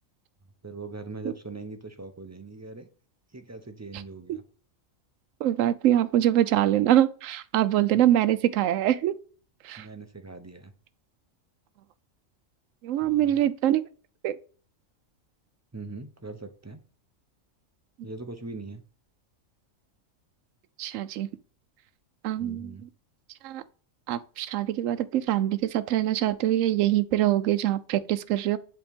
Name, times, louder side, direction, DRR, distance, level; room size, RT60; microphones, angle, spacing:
voice 1, 0.6-2.9 3.3-4.4 7.9-8.0 9.8-10.7 13.0-13.4 15.7-16.8 18.0-18.8 22.4-22.9, right 3 dB, 20° right, 0.5 m, -41 dB
voice 2, 5.4-9.2 9.6-9.9 12.8-13.8 14.2-14.4 20.8-21.3 22.2-22.7 23.4-23.6 24.1-28.6, right 12 dB, 75° right, 1.0 m, -24 dB
7.7 x 4.3 x 3.5 m
omnidirectional pair, 1.4 m